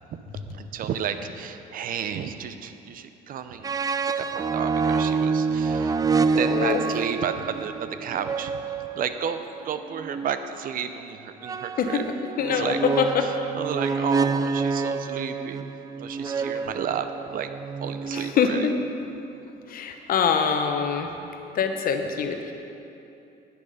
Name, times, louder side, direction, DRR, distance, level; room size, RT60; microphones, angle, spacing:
voice 1, 0.4-3.7 4.2-6.0 6.4-8.6 8.9-12.0 12.4-12.8 13.5-15.7 16.0-17.1 17.3-17.5 17.8-18.7, right 8 dB, 55° right, 9 dB, 0.7 m, -32 dB
sound 1, 3.6-10.3 11.4-18.8, right 5 dB, 20° right, 0.4 m, -27 dB
voice 2, 6.5-6.8 11.8-12.0 12.4-13.2 16.4-16.5 18.1-18.7 19.7-21.1 21.5-22.5, left 6 dB, 60° left, 5 dB, 1.0 m, -24 dB
10.5 x 9.6 x 5.0 m, 2.9 s
cardioid pair, 110°, 17 cm